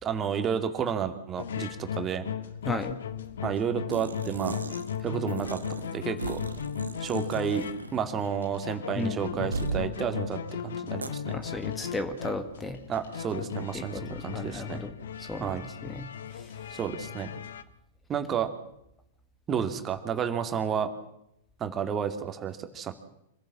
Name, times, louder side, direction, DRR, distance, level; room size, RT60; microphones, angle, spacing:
voice 1, 0.0-2.2 3.4-4.6 5.0-5.6 5.9-6.4 7.0-7.6 7.9-11.4 12.9-14.8 15.4-15.6 16.7-17.3 18.1-18.5 19.5-20.9 21.6-22.9, right 7 dB, 25° right, 7 dB, 2.4 m, -31 dB
sound 1, 1.4-17.6, left 8 dB, 70° left, 1.3 m, -37 dB
voice 2, 2.7-3.0 9.0-9.5 11.3-12.8 13.7-14.9 15.2-16.7, left 2 dB, 10° left, 9 dB, 1.9 m, -35 dB
sound 2, 3.9-5.0 5.3-8.1 8.3-8.4 9.5-9.9 11.0-11.1, right 4 dB, 85° right, 1.4 m, -36 dB
26.0 x 15.5 x 7.4 m, 0.80 s
figure-of-eight pair, 100°, 0 cm